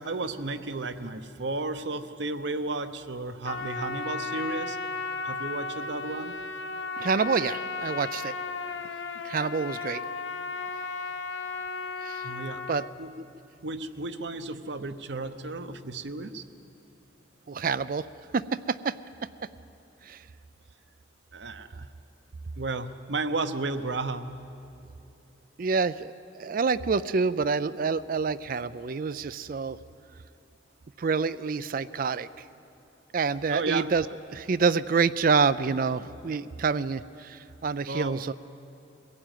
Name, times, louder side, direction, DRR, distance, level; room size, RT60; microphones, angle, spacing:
voice 1, 0.0-4.8 5.2-6.4 12.2-12.6 13.0-13.1 13.6-16.4 21.3-21.9 22.6-24.4 33.5-33.9 37.9-38.3, right 3 dB, 65° right, 10 dB, 0.9 m, -33 dB
Trumpet, 3.4-12.9, left 4 dB, 80° left, 0.9 m, -35 dB
voice 2, 7.0-8.3 9.2-10.0 12.0-12.2 12.7-12.8 17.5-18.1 18.3-19.0 20.0-20.2 25.6-29.8 31.0-32.3 33.1-34.0 34.3-38.3, right 5 dB, 45° right, 15 dB, 0.4 m, -27 dB
22.5 x 16.5 x 9.2 m, 2.9 s
head